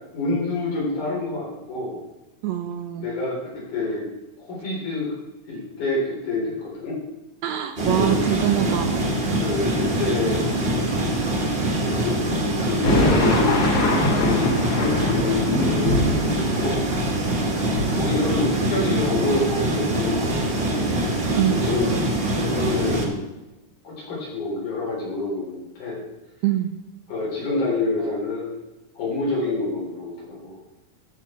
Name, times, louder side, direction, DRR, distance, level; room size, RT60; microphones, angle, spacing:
voice 1, 0.1-2.0 3.0-4.1 4.4-5.1 5.5-7.0 7.8-8.1 9.4-10.9 11.9-12.2 12.6-13.7 14.0-16.9 17.9-20.9 21.5-22.0 22.4-23.2 23.8-26.0 27.1-28.5 29.0-30.6, left 2 dB, 75° left, -4 dB, 5.2 m, -27 dB
voice 2, 2.4-3.1 7.4-8.9 17.3-17.5 21.3-21.6 26.4-26.8 28.0-28.2, right 12 dB, 80° right, 8 dB, 1.6 m, -24 dB
sound 1, 7.8-23.1, right 1 dB, 25° right, 1.3 m, -24 dB
sound 2, 12.7-19.5 19.9-20.7 21.1-21.7, left 1 dB, 55° left, 2.8 m, -25 dB
13.5 x 6.4 x 4.4 m, 1.0 s
omnidirectional pair, 3.5 m